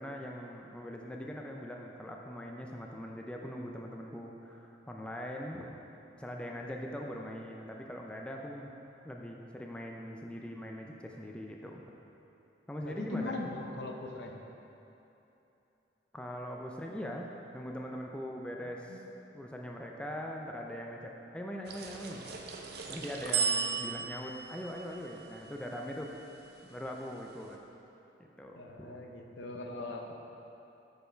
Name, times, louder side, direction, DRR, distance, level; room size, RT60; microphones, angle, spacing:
voice 1, 0.0-5.7 6.2-8.7 9.0-11.8 12.7-13.5 16.1-17.3 17.5-19.0 19.3-22.4 22.9-26.1 26.6-27.6 28.4-29.0, equal, 5° left, 0 dB, 0.4 m, -41 dB
voice 2, 12.8-14.4 18.9-19.0 28.6-30.1, left 2 dB, 70° left, 2 dB, 0.7 m, -40 dB
sound 1, 21.7-26.2, right 6 dB, 60° right, 0.6 m, -36 dB
6.5 x 5.5 x 4.4 m, 3.0 s
head